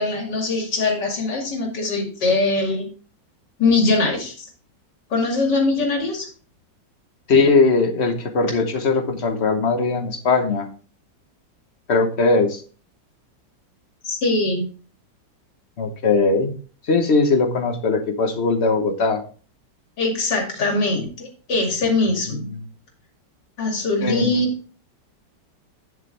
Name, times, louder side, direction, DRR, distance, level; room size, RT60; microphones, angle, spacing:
voice 1, 0.0-2.9 3.6-4.5 5.1-6.3 14.0-14.7 20.0-22.5 23.6-24.5, left 2 dB, 70° left, 1 dB, 3.0 m, -22 dB
voice 2, 7.3-10.7 11.9-12.6 15.8-16.5 16.8-19.2 22.3-22.7 24.0-24.4, left 4 dB, 40° left, 6 dB, 1.3 m, -20 dB
9.9 x 7.5 x 3.4 m, 0.39 s
omnidirectional pair, 2.0 m